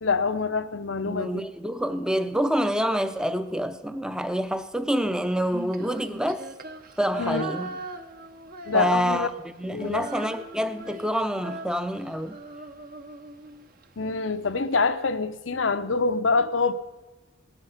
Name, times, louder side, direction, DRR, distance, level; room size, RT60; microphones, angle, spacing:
voice 1, 0.0-1.4 7.2-7.4 8.7-9.3 9.7-10.1 14.0-16.7, left 4 dB, 70° left, 0.8 m, -25 dB
voice 2, 1.0-6.4 7.0-7.8 8.7-9.3 9.6-12.4, equal, 5° right, 0.7 m, -27 dB
Female singing, 5.4-9.3 9.6-13.9, right 2 dB, 45° right, 1.1 m, -40 dB
18.5 x 11.0 x 5.7 m
head